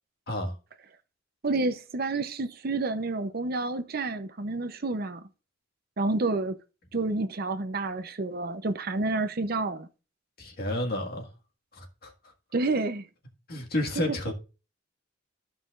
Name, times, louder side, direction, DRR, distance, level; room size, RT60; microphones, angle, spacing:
voice 1, 1.4-5.2 6.0-6.6 6.9-9.9 12.5-13.1 14.0-14.3, right 3 dB, 50° right, 0.7 m, -29 dB
voice 2, 10.4-11.3 11.7-12.1 13.5-14.3, left 1 dB, 50° left, 1.8 m, -31 dB
14.0 x 5.6 x 2.5 m
head